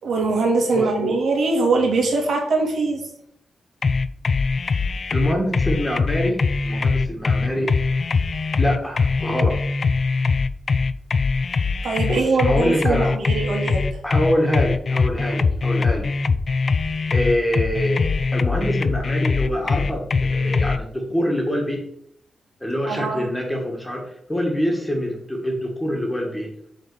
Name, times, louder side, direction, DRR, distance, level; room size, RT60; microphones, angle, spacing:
voice 1, 0.0-3.0 11.8-13.8 22.9-23.3, right 3 dB, 75° right, 1 dB, 2.4 m, -22 dB
voice 2, 0.7-1.1 5.1-8.0 8.6-9.6 12.1-13.1 14.0-16.1 17.1-21.8 22.6-26.5, equal, 5° left, 1 dB, 1.6 m, -25 dB
sound 1, 3.8-20.8, left 4 dB, 35° left, 0.3 m, -22 dB
8.8 x 4.0 x 6.9 m, 0.70 s
wide cardioid pair, 175°, 0 cm